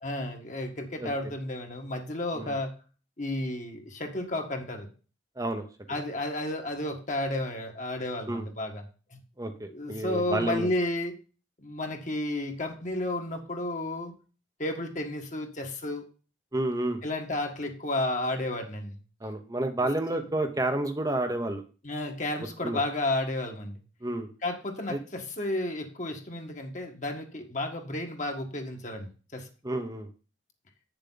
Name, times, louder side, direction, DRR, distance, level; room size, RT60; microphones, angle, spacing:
voice 1, 0.0-2.7 3.2-4.9 5.9-8.8 9.1-9.2 9.7-11.1 11.6-14.1 14.6-16.0 17.0-19.0 20.1-20.2 21.8-23.8 24.4-29.5, left 1 dB, 40° left, 3 dB, 1.7 m, -32 dB
voice 2, 5.4-5.7 8.3-8.5 9.4-10.7 16.5-17.0 19.2-21.6 22.6-22.8 24.0-24.3 24.9-25.0 29.6-30.1, right 1 dB, 20° right, 5 dB, 0.8 m, -30 dB
8.8 x 6.8 x 3.9 m, 0.36 s
head